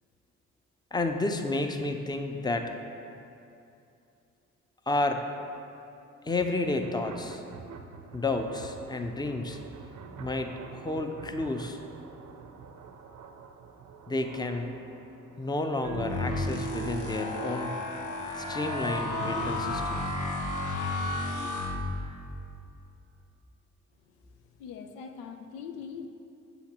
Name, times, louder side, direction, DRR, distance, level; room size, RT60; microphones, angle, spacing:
voice 1, 0.9-2.7 4.9-5.3 6.2-7.4 8.1-9.6 10.2-11.8 14.1-14.7 15.4-17.8 18.4-20.1, left 2 dB, 10° left, 6 dB, 0.6 m, -31 dB
sound 1, 6.3-19.8, right 5 dB, 60° right, 0.6 m, -44 dB
sound 2, 15.8-22.3, left 2 dB, 60° left, 1.1 m, -33 dB
voice 2, 24.5-26.1, left 6 dB, 80° left, 6 dB, 0.5 m, -42 dB
8.2 x 7.7 x 2.9 m, 2.6 s
hypercardioid pair, 45°, 35 cm